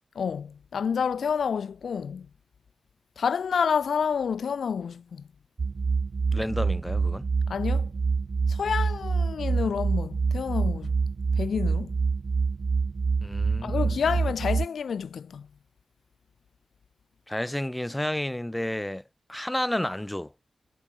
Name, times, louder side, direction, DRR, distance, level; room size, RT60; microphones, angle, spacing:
voice 1, 0.2-2.3 3.2-5.2 7.5-7.9 8.5-11.1 11.4-11.9 13.6-15.5, left 6 dB, 85° left, 1.7 m, -29 dB
sound 1, 5.6-14.7, right 4 dB, 50° right, 5.2 m, -26 dB
voice 2, 6.3-7.3 13.2-14.0 17.3-19.0 19.3-20.3, left 1 dB, 10° left, 6.3 m, -31 dB
wide cardioid pair, 120°, 0 cm